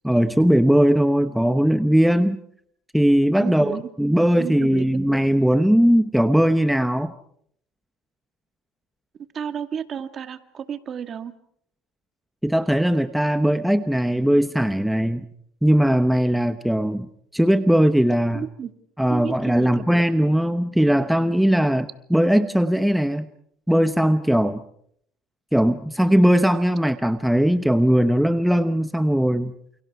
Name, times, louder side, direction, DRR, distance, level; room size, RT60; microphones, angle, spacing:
voice 1, 0.0-2.4 2.9-7.1 12.4-15.3 15.6-17.1 17.3-18.4 19.0-23.3 23.7-24.6 25.5-29.5, equal, ahead, 11 dB, 1.0 m, -19 dB
voice 2, 3.4-3.9 4.4-5.2 9.3-11.3 18.3-18.7 19.1-19.7, right 7 dB, 40° right, 10 dB, 1.9 m, -32 dB
29.5 x 29.0 x 4.8 m, 0.67 s
supercardioid pair, 110°, 0 cm